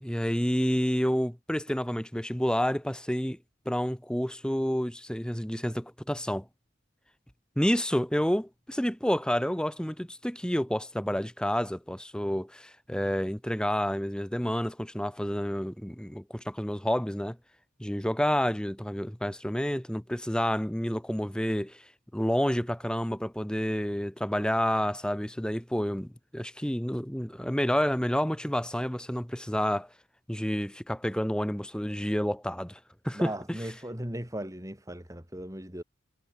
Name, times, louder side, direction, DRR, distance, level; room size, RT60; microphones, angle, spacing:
voice 1, 0.0-3.4 3.6-6.4 7.6-17.4 17.8-21.8 22.1-29.9 30.3-32.8 33.0-33.6, equal, 5° left, 1.2 m, -29 dB
voice 2, 33.1-35.8, right 1 dB, 15° right, 5.6 m, -37 dB
head